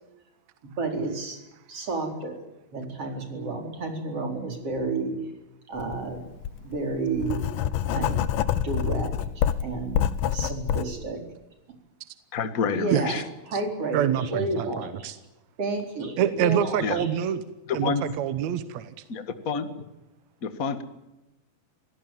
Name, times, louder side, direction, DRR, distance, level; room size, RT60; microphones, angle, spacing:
voice 1, 0.6-1.4 1.7-2.4 2.7-5.2 5.7-6.2 6.6-7.4 7.9-9.1 9.6-11.2 12.7-15.1 15.6-17.0, right 3 dB, 40° right, 3 dB, 5.1 m, -31 dB
Writing, 5.8-6.0 6.4-10.8, left 10 dB, 70° left, 2.3 m, -26 dB
voice 2, 12.3-13.2 16.8-17.0 17.7-18.0 19.1-19.7 20.4-20.8, left 5 dB, 45° left, 9 dB, 1.1 m, -28 dB
voice 3, 13.9-15.2 16.2-17.4 17.7-18.9, right 10 dB, 70° right, 11 dB, 1.8 m, -26 dB
26.0 x 17.5 x 9.2 m, 0.99 s
omnidirectional pair, 4.4 m